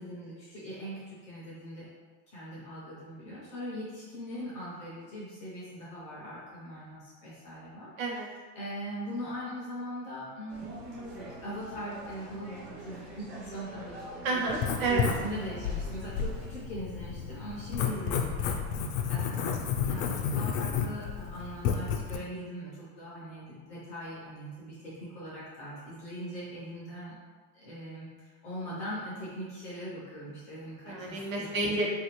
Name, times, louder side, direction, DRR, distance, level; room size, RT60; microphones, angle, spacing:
voice 1, 0.0-1.9 2.3-7.9 8.5-14.4 14.9-18.8 19.1-27.1 27.5-31.5 31.8-31.9, equal, 20° left, -8 dB, 0.3 m, -41 dB
voice 2, 8.0-8.3 14.2-15.1 30.9-31.9, right 3 dB, 85° right, -2 dB, 0.9 m, -30 dB
sound 1, 10.5-16.5, right 2 dB, 45° right, 0.7 m, -45 dB
Writing, 14.5-22.2, left 7 dB, 80° left, 0.5 m, -32 dB
3.4 x 2.5 x 2.9 m, 1.4 s
supercardioid pair, 180°, 39 cm